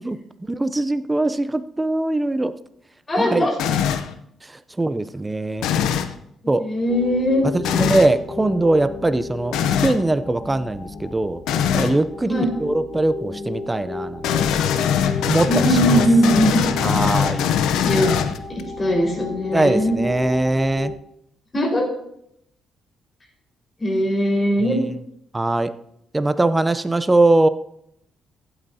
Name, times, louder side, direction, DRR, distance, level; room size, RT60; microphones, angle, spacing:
voice 1, 0.5-2.5 3.2-3.5 4.8-5.7 6.5-6.6 7.5-9.6 9.8-11.4 11.7-14.3 15.2-16.0 16.8-17.4 19.5-20.9 25.3-25.7 26.1-27.5, right 2 dB, 15° right, 12 dB, 0.6 m, -21 dB
voice 2, 3.1-3.5 6.6-7.4 12.3-12.5 15.5-16.5 17.8-18.1 18.8-20.0 21.5-21.9 23.8-24.8, equal, 30° left, -1 dB, 4.6 m, -19 dB
sound 1, 3.6-4.1 5.6-6.1 7.6-8.1 9.5-10.0 11.5-12.0 14.2-18.6, left 8 dB, 90° left, 0.6 m, -21 dB
sound 2, 6.9-20.9, left 3 dB, 45° left, 1.2 m, -34 dB
15.0 x 8.8 x 2.8 m, 0.75 s
cardioid pair, 90°, 0 cm